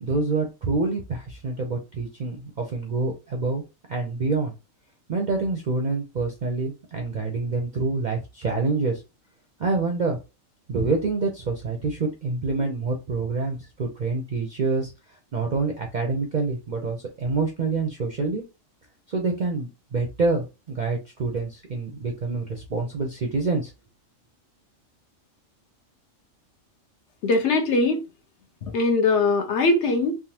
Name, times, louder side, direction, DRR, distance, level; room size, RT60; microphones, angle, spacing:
voice 1, 0.0-3.6 3.9-4.5 5.1-9.0 9.6-10.2 10.7-14.9 15.3-18.4 19.1-23.7, right 3 dB, 55° right, 0.5 m, -26 dB
voice 2, 27.2-28.0 28.6-30.1, left 3 dB, 65° left, 0.9 m, -21 dB
3.4 x 2.0 x 2.8 m
omnidirectional pair, 1.4 m